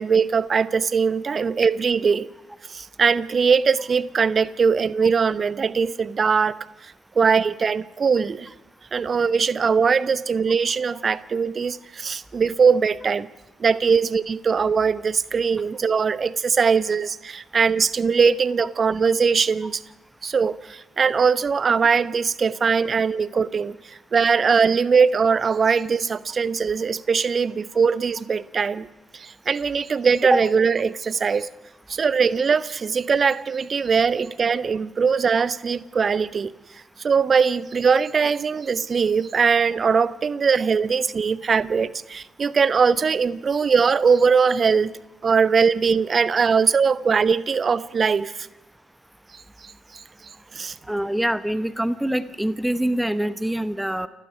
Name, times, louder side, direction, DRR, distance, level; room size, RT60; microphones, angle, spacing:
voice 1, 0.0-2.3 2.7-6.6 6.8-8.5 8.9-13.3 13.6-19.8 20.2-28.9 29.1-31.5 31.9-36.5 37.0-44.9 45.2-48.5 49.3-50.0 50.5-50.8, right 5 dB, 35° right, 18 dB, 0.8 m, -21 dB
voice 2, 50.9-54.1, right 1 dB, 5° right, 15 dB, 0.9 m, -24 dB
29.0 x 16.5 x 5.8 m, 0.99 s
figure-of-eight pair, 45°, 0 cm